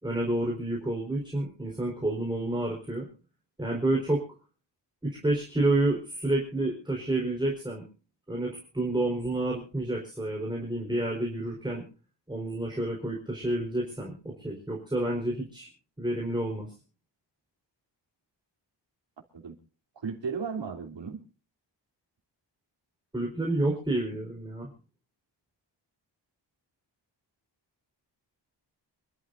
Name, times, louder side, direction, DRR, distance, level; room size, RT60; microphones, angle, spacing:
voice 1, 0.0-3.1 3.6-4.2 5.0-7.8 8.3-11.9 12.3-15.7 16.0-16.7 23.1-24.7, right 2 dB, 10° right, -1 dB, 4.3 m, -29 dB
voice 2, 19.9-21.2, right 5 dB, 80° right, 3 dB, 3.3 m, -35 dB
27.5 x 12.5 x 2.6 m, 0.36 s
wide cardioid pair, 160°, 43 cm